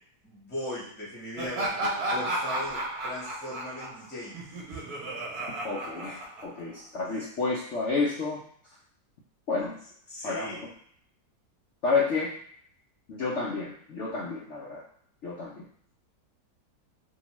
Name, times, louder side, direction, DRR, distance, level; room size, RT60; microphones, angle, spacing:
voice 1, 0.2-4.8 10.1-10.6, left 1 dB, 10° left, -7 dB, 0.6 m, -38 dB
Laughter, 1.4-6.8, right 1 dB, 70° right, 1.1 m, -33 dB
voice 2, 5.6-8.4 9.5-9.8 10.2-10.7 11.8-12.3 13.1-14.8 15.2-15.6, left 4 dB, 75° left, -6 dB, 0.7 m, -30 dB
2.8 x 2.3 x 2.9 m, 0.62 s
omnidirectional pair, 1.9 m